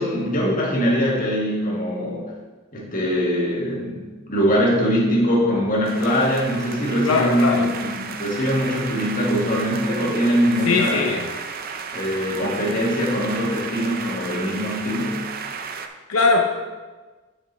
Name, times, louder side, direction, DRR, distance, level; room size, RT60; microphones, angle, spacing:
voice 1, 0.0-2.3 2.7-11.1 11.9-15.2, equal, 40° left, -4 dB, 1.8 m, -22 dB
sound 1, 5.8-15.9, right 6 dB, 45° right, 0.5 m, -33 dB
voice 2, 7.0-7.7 10.7-11.3 16.1-16.4, left 3 dB, 90° left, 2 dB, 0.7 m, -20 dB
6.9 x 6.2 x 4.2 m, 1.3 s
head